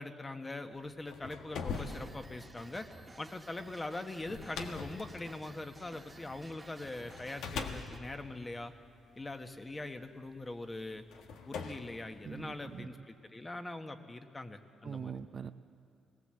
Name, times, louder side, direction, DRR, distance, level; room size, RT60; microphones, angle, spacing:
voice 1, 0.0-2.9 3.2-8.7 9.2-11.0 11.5-15.2, left 2 dB, 20° left, 7 dB, 1.3 m, -42 dB
sound 1, 0.9-6.5 7.1-9.5 10.4-10.5 11.1-12.8, left 5 dB, 80° left, 1.4 m, -43 dB
sound 2, 1.7-8.0, right 2 dB, 15° right, 1.4 m, -54 dB
voice 2, 12.2-12.9 14.8-15.5, right 6 dB, 45° right, 10 dB, 0.6 m, -42 dB
20.0 x 18.5 x 7.7 m, 2.4 s
cardioid pair, 90°, 0 cm